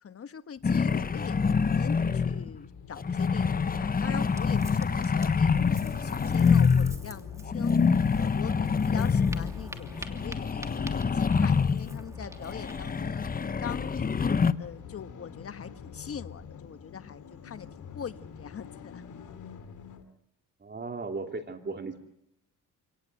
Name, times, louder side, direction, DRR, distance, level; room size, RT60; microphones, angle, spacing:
voice 1, 0.0-7.7 8.2-14.1 14.6-19.0, left 7 dB, 45° left, 11 dB, 1.4 m, -42 dB
sound 1, 0.6-20.0, left 6 dB, 65° left, 3.0 m, -46 dB
sound 2, 0.6-2.6 3.0-7.0 7.5-12.0 12.4-14.5, left 5 dB, 25° left, 0.9 m, -26 dB
Ocean, 4.1-12.9, right 1 dB, 10° right, 2.9 m, -47 dB
voice 2, 20.6-22.0, right 3 dB, 30° right, 5 dB, 2.6 m, -36 dB
27.5 x 18.5 x 8.2 m, 0.80 s
cardioid pair, 85°, 33 cm